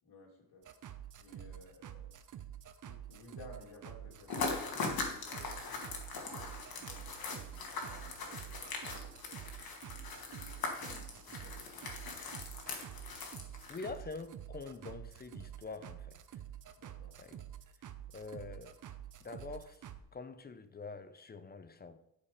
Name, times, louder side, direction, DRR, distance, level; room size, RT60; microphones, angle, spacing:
voice 1, 0.0-0.7 1.2-2.1 2.8-5.8 6.1-8.8 9.0-9.4 10.2-12.0 16.8-17.2, left 2 dB, 80° left, -3 dB, 3.0 m, -57 dB
sound 1, 0.6-20.0, right 10 dB, 50° right, 0.7 m, -49 dB
sound 2, 4.3-14.0, left 4 dB, 60° left, 1.9 m, -41 dB
voice 2, 13.7-16.4 17.2-17.4 18.1-18.8 19.2-22.0, left 4 dB, 25° left, 10 dB, 0.6 m, -46 dB
11.5 x 5.0 x 5.0 m, 0.82 s
wide cardioid pair, 145°, 40 cm